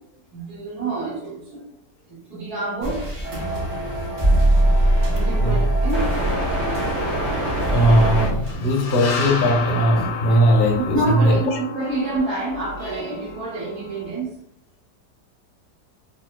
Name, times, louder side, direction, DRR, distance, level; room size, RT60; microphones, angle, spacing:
voice 1, 0.3-1.6 2.1-3.1 5.1-6.4 10.9-14.3, right 2 dB, 65° right, -4 dB, 1.5 m, -27 dB
sound 1, 2.8-8.5, right 1 dB, 40° right, 0.5 m, -22 dB
sound 2, 3.2-8.3, right 1 dB, 90° right, 2.0 m, -27 dB
voice 2, 7.6-11.4, equal, 55° left, 0 dB, 0.6 m, -18 dB
sound 3, 8.4-14.1, left 4 dB, 80° left, 1.2 m, -32 dB
4.1 x 2.4 x 2.2 m, 0.71 s
omnidirectional pair, 1.8 m